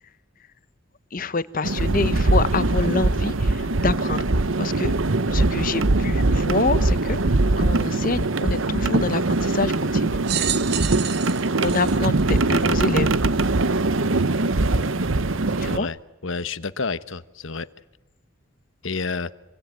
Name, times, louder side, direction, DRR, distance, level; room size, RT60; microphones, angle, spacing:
voice 1, 1.1-4.9 5.3-10.2 11.6-13.1 15.6-15.9, left 3 dB, 40° left, 1.0 m, -27 dB
sound 1, 1.6-15.8, right 2 dB, 70° right, 1.0 m, -22 dB
sound 2, 10.2-12.9 13.6-13.7 14.8-14.9, right 11 dB, 50° right, 1.3 m, -30 dB
voice 2, 15.6-16.0 16.2-17.7 18.8-19.3, left 4 dB, 65° left, 1.1 m, -29 dB
27.0 x 24.5 x 9.0 m
head